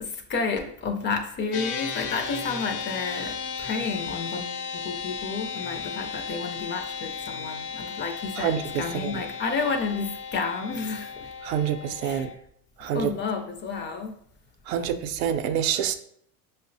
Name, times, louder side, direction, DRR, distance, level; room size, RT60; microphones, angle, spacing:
voice 1, 0.0-11.3 12.0-12.3 12.9-14.2, left 4 dB, 25° left, 0.4 m, -31 dB
sound 1, 1.5-12.3, left 6 dB, 75° left, 0.7 m, -35 dB
voice 2, 8.4-9.2 11.4-12.3 12.8-13.1 14.7-16.0, right 9 dB, 75° right, 0.5 m, -27 dB
5.2 x 2.1 x 2.5 m
hypercardioid pair, 95°, 43 cm